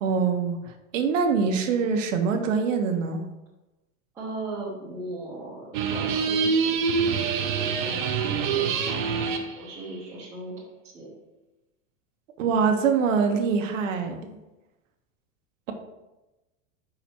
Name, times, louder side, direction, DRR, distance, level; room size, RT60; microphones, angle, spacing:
voice 1, 0.0-3.2 12.4-14.4, right 5 dB, 85° right, 6 dB, 1.1 m, -24 dB
voice 2, 4.1-10.5 10.8-11.1, right 2 dB, 5° right, -10 dB, 1.0 m, -38 dB
sound 1, 5.7-9.5, right 5 dB, 40° right, 0.6 m, -25 dB
5.8 x 4.9 x 4.4 m, 1.0 s
supercardioid pair, 180°, 37 cm